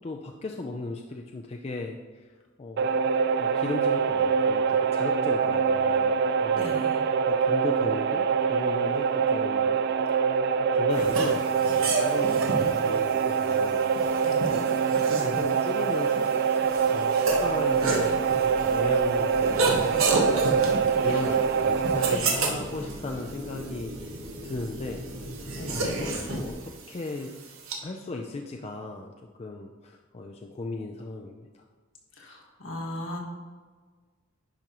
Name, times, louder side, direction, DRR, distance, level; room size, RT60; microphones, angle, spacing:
voice 1, 0.0-2.3 2.6-3.0 3.4-6.1 6.4-6.8 7.3-9.8 10.7-14.7 15.2-20.3 20.8-24.1 24.4-27.3 27.8-29.1 29.4-31.6, left 2 dB, 30° left, 2 dB, 0.4 m, -37 dB
sound 1, 2.8-22.2, right 6 dB, 55° right, 0.3 m, -24 dB
voice 2, 6.5-7.0 14.2-14.5 20.9-21.1 22.0-22.3 25.5-25.9 32.2-33.2, left 1 dB, 65° left, -2 dB, 1.6 m, -38 dB
sound 2, 10.9-27.7, right 3 dB, 85° right, 1.2 m, -32 dB
sound 3, 17.3-26.5, equal, 35° right, 1.7 m, -41 dB
10.5 x 5.2 x 3.0 m, 1.5 s
head